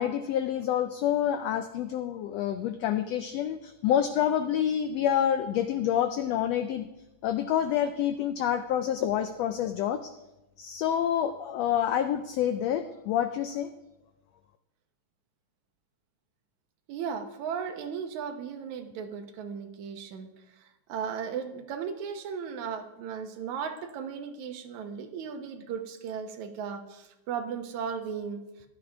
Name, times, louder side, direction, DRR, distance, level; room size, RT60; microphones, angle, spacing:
voice 1, 0.0-6.9 7.2-10.1 10.6-13.7, left 10 dB, 85° left, 10 dB, 1.4 m, -28 dB
voice 2, 16.9-20.3 20.6-28.4, right 7 dB, 75° right, 6 dB, 2.3 m, -36 dB
14.5 x 11.5 x 3.5 m, 0.96 s
omnidirectional pair, 3.5 m